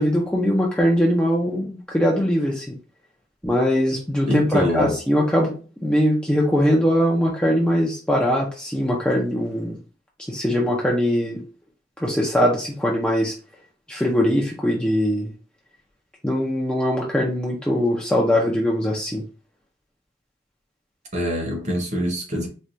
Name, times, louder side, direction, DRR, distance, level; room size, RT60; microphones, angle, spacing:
voice 1, 0.0-2.8 3.4-5.5 5.8-9.8 10.3-11.4 12.0-13.3 13.9-15.3 16.2-19.2, equal, 5° left, 0.4 m, -21 dB
voice 2, 4.2-4.9 21.1-22.5, equal, 35° right, 0.9 m, -24 dB
4.3 x 2.2 x 2.6 m
head